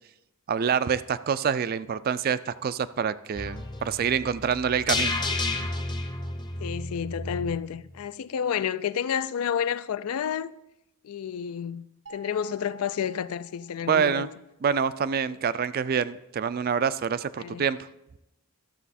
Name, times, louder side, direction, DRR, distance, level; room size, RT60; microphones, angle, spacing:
voice 1, 0.5-5.2 13.9-14.3 14.6-17.8, right 7 dB, 45° right, 0.3 m, -26 dB
sound 1, 3.4-7.6 7.9-8.0, left 2 dB, 20° left, 0.7 m, -31 dB
voice 2, 6.6-10.5 11.0-14.3 17.4-17.6, left 8 dB, 90° left, 0.4 m, -30 dB
sound 2, 12.1-14.3, right 2 dB, 70° right, 0.9 m, -49 dB
12.5 x 7.0 x 4.2 m
head